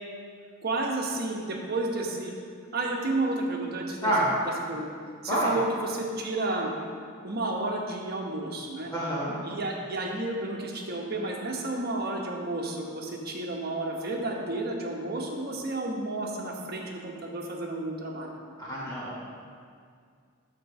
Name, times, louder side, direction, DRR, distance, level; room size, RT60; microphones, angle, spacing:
voice 1, 0.6-2.3 2.7-4.9 5.2-6.7 7.2-8.9 9.4-18.3, right 2 dB, 50° right, 0 dB, 1.2 m, -31 dB
voice 2, 8.9-9.3 18.6-19.2, right 1 dB, 20° left, -8 dB, 1.5 m, -27 dB
11.0 x 3.9 x 6.6 m, 2.1 s
head